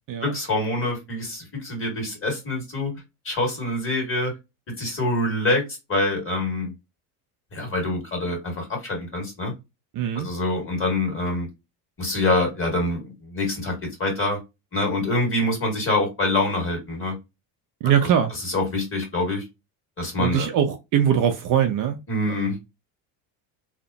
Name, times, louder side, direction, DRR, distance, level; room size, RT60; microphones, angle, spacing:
voice 1, 0.2-2.9 3.3-4.3 4.8-5.6 5.9-6.7 7.5-9.5 10.1-11.5 12.0-14.4 14.7-17.2 18.0-18.1 18.4-19.4 20.0-20.5 22.1-22.6, left 2 dB, 30° left, 1.7 m, -25 dB
voice 2, 9.9-10.3 17.8-18.3 20.2-22.0 22.3-22.5, right 9 dB, 45° right, 0.5 m, -22 dB
2.8 x 2.1 x 2.6 m
supercardioid pair, 105°, 45 cm